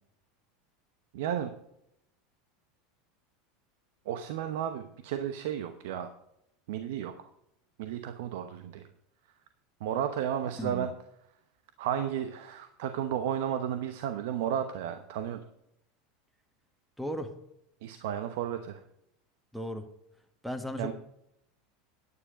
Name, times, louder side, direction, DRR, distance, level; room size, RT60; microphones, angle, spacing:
voice 1, 1.1-1.5 4.1-6.1 6.7-7.1 7.8-8.8 9.8-10.9 11.8-15.4 17.8-18.8 20.8-20.9, right 9 dB, 70° right, 0.9 m, -33 dB
voice 2, 10.6-10.9 17.0-17.4 19.5-19.9 20.4-20.9, equal, ahead, 1.6 m, -36 dB
9.8 x 9.7 x 5.2 m
hypercardioid pair, 90°, 0 cm